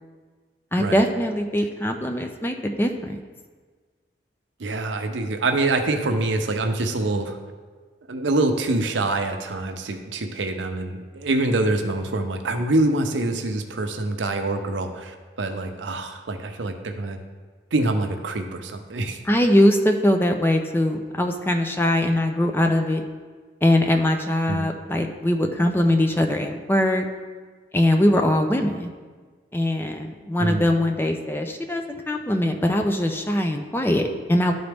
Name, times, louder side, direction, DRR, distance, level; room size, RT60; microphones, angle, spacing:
voice 1, 0.7-3.2 19.2-23.0 23.6-27.1 27.7-28.9 29.5-34.5, left 1 dB, 10° left, 4 dB, 0.4 m, -21 dB
voice 2, 4.6-7.4 8.1-17.2 17.7-19.2 24.5-24.7 30.4-30.7, right 2 dB, 90° right, 6 dB, 0.6 m, -25 dB
12.0 x 4.0 x 3.4 m, 1.5 s
head